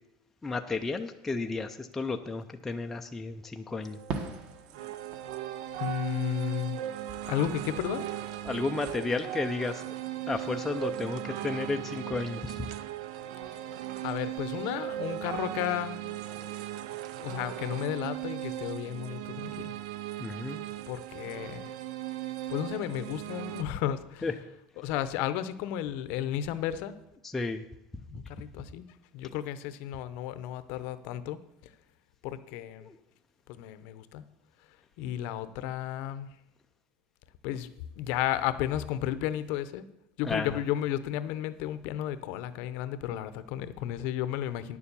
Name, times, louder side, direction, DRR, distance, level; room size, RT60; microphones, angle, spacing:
voice 1, 0.4-4.0 8.4-9.8 10.3-12.7 20.2-20.6 24.2-24.3 27.2-27.7 32.8-33.0 40.2-40.6, left 3 dB, 5° left, 4 dB, 0.4 m, -32 dB
sound 1, 3.8-23.6, right 13 dB, 70° right, 0.6 m, -38 dB
Fireworks, 4.1-6.7 7.0-9.0, right 4 dB, 30° right, 1.1 m, -43 dB
voice 2, 5.8-6.8 7.2-8.1 13.5-13.6 14.0-16.0 17.2-19.7 20.9-21.7 22.5-24.2 24.8-27.0 28.1-28.9 29.1-31.4 32.2-32.9 33.5-34.2 35.0-36.3 37.4-37.7 38.0-39.8 40.2-44.8, left 11 dB, 50° left, 13 dB, 0.7 m, -33 dB
10.0 x 7.2 x 6.8 m, 0.84 s
cardioid pair, 180°, 4 cm